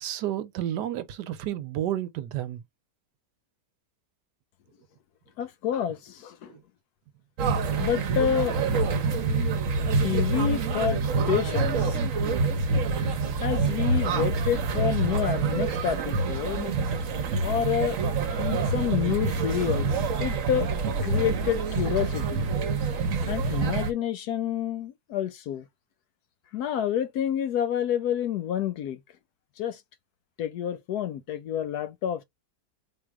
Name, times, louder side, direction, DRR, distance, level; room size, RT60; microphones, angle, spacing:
voice 1, 0.0-2.6 6.5-6.6, right 12 dB, 80° right, 1.2 m, -31 dB
voice 2, 5.4-6.5 7.8-8.6 10.0-11.0 11.3-12.0 13.4-16.7 17.4-18.0 18.4-19.9 20.2-20.7 21.0-22.5 23.3-25.6 26.5-29.0 29.6-29.8 30.4-32.2, left 9 dB, 70° left, 1.1 m, -28 dB
sound 1, 7.4-23.9, right 4 dB, 55° right, 1.0 m, -26 dB
3.9 x 2.6 x 4.7 m
omnidirectional pair, 1.9 m